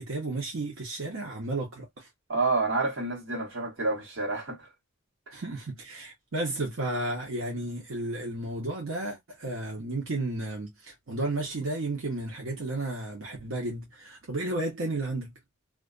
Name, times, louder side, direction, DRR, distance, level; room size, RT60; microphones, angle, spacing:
voice 1, 0.0-2.1 5.3-15.3, right 2 dB, 90° right, 0.8 m, -33 dB
voice 2, 2.3-4.7 5.3-5.4, right 3 dB, 65° right, 1.2 m, -29 dB
2.4 x 2.2 x 2.3 m
head